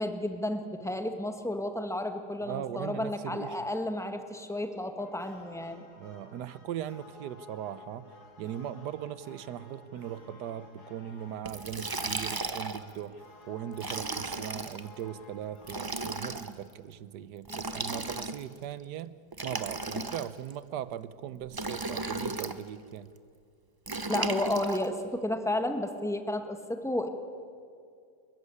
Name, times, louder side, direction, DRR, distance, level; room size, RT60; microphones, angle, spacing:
voice 1, 0.0-5.8 24.1-27.1, left 1 dB, ahead, 6 dB, 1.4 m, -32 dB
voice 2, 2.4-3.6 6.0-8.1 8.4-19.1 19.4-23.1, right 10 dB, 80° right, 16 dB, 1.4 m, -39 dB
sound 1, 5.0-15.8, left 3 dB, 65° left, 2.9 m, -53 dB
Liquid, 11.5-12.9 13.7-14.8 15.6-16.5 17.4-18.6 19.3-20.5 21.5-22.6 23.9-24.9, right 3 dB, 30° right, 0.4 m, -35 dB
26.5 x 15.0 x 9.7 m, 2.3 s
omnidirectional pair, 1.8 m